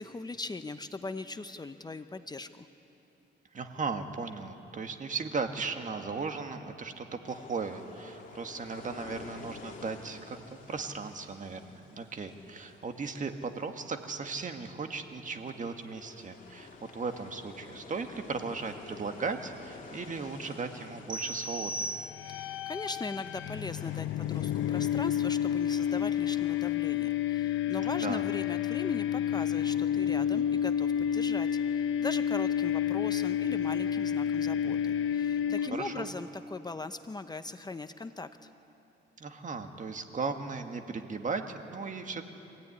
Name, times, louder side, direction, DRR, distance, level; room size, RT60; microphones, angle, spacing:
voice 1, 0.0-2.7 22.2-38.5, left 3 dB, 20° left, 9 dB, 0.8 m, -40 dB
voice 2, 3.5-21.8 27.8-28.3 35.5-36.1 39.2-42.3, right 4 dB, 40° right, 6 dB, 1.8 m, -37 dB
sound 1, 7.2-26.7, left 4 dB, 40° left, 3.0 m, -51 dB
sound 2, 21.1-22.6, right 1 dB, 20° right, 1.4 m, -37 dB
sound 3, 22.1-36.1, left 10 dB, 80° left, 0.8 m, -30 dB
25.5 x 16.0 x 9.8 m, 3.0 s
cardioid pair, 90°, 20 cm